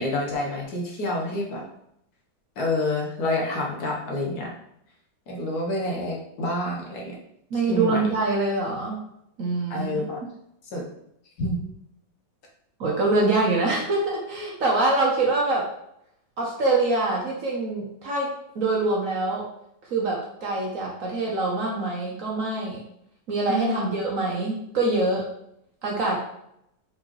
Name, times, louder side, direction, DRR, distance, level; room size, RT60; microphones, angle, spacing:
voice 1, 0.0-1.6 2.6-4.5 5.3-7.1 7.5-8.0 9.7-10.2 10.7-10.9 11.4-11.6 23.5-23.9, left 1 dB, 60° left, -2 dB, 1.3 m, -28 dB
voice 2, 7.5-9.0 9.4-10.0 12.8-15.7 16.4-19.5 19.9-22.8 23.3-25.3 25.8-26.2, right 2 dB, 55° right, -2 dB, 1.0 m, -24 dB
4.3 x 3.8 x 3.0 m, 0.76 s
omnidirectional pair, 2.0 m